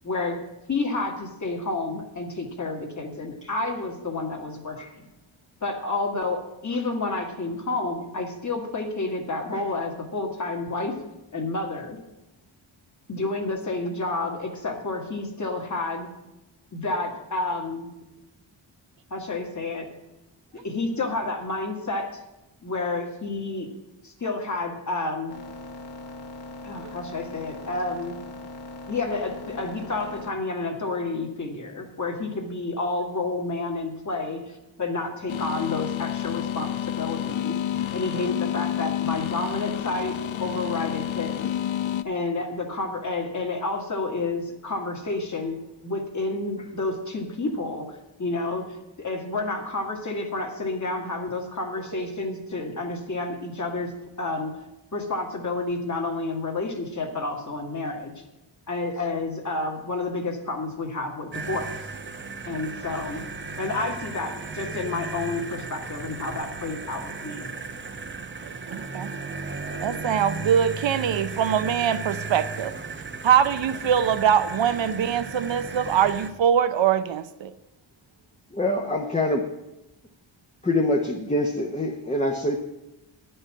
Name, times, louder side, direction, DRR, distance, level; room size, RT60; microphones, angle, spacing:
voice 1, 0.0-0.4 0.7-4.8 5.6-10.9 11.3-12.0 13.1-16.1 16.7-17.9 19.1-19.9 20.6-22.2 22.6-23.7 24.0-25.3 26.6-28.2 28.9-37.6 37.9-41.6 42.0-45.6 45.8-47.9 48.2-48.7 49.0-53.9 54.2-54.5 54.9-58.2 58.7-61.8 62.5-63.2 63.6-67.5, left 3 dB, 35° left, 2 dB, 1.7 m, -30 dB
sound 1, 25.3-30.3, left 2 dB, 55° left, 1.9 m, -40 dB
sound 2, 35.3-42.0, left 11 dB, 75° left, 0.6 m, -29 dB
sound 3, 61.3-76.3, right 4 dB, 25° right, 0.6 m, -35 dB
voice 2, 68.4-69.1 69.8-72.7 73.2-77.5, right 8 dB, 65° right, 12 dB, 0.7 m, -23 dB
voice 3, 78.5-79.4 80.6-82.6, left 1 dB, 15° left, 1 dB, 0.8 m, -25 dB
10.5 x 5.5 x 8.7 m, 0.97 s
wide cardioid pair, 165°, 48 cm